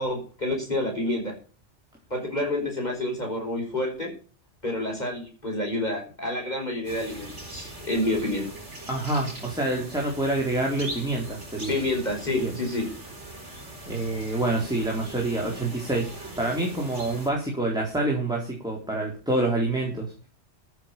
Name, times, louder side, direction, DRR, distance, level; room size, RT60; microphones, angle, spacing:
voice 1, 0.0-1.3 2.1-4.1 4.6-8.5 11.7-12.9, left 1 dB, 40° left, 0 dB, 5.7 m, -28 dB
sound 1, 6.8-17.3, right 1 dB, 85° right, 4.8 m, -41 dB
voice 2, 8.9-11.7 12.4-12.5 13.9-20.1, right 2 dB, 5° right, -2 dB, 4.0 m, -27 dB
14.5 x 7.5 x 7.0 m, 0.37 s
omnidirectional pair, 1.2 m